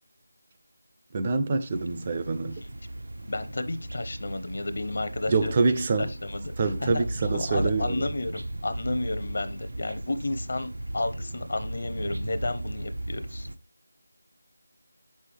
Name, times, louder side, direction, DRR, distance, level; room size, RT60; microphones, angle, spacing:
voice 1, 1.1-2.6 5.3-6.1 6.6-8.1, right 3 dB, 25° right, 0.5 m, -26 dB
sound 1, 1.7-13.5, right 1 dB, 75° right, 0.8 m, -36 dB
voice 2, 3.3-13.5, left 2 dB, 55° left, 0.7 m, -32 dB
6.7 x 5.5 x 3.4 m
figure-of-eight pair, 175°, 0 cm